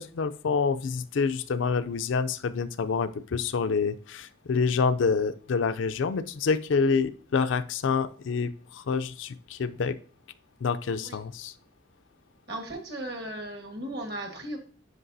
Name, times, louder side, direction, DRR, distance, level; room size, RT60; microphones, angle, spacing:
voice 1, 0.0-10.0 10.6-11.5, left 5 dB, 70° left, 11 dB, 0.4 m, -27 dB
voice 2, 12.5-14.6, right 1 dB, 55° right, 3 dB, 1.4 m, -36 dB
9.8 x 5.3 x 2.6 m, 0.43 s
head